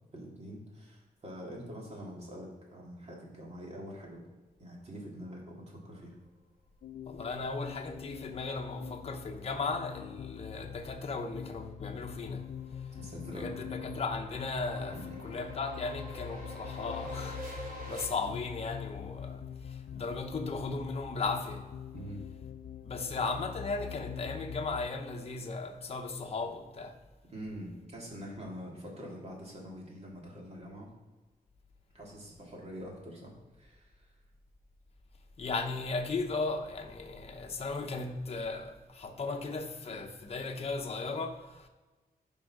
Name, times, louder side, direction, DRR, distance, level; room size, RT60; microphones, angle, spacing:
voice 1, 0.1-4.3 4.6-6.1 13.0-13.5 14.9-15.0 21.9-22.2 27.3-30.9 31.9-34.1, equal, 45° right, 2.7 m, -45 dB
sound 1, 6.8-24.9, left 9 dB, 70° left, 0.4 m, -44 dB
voice 2, 7.1-12.5 13.3-21.6 22.8-27.0 35.4-41.7, left 3 dB, 40° left, 0.9 m, -36 dB
sound 2, 11.5-18.0, right 1 dB, 60° right, 3.0 m, -47 dB
10.5 x 5.5 x 4.9 m
wide cardioid pair, 120°, 16 cm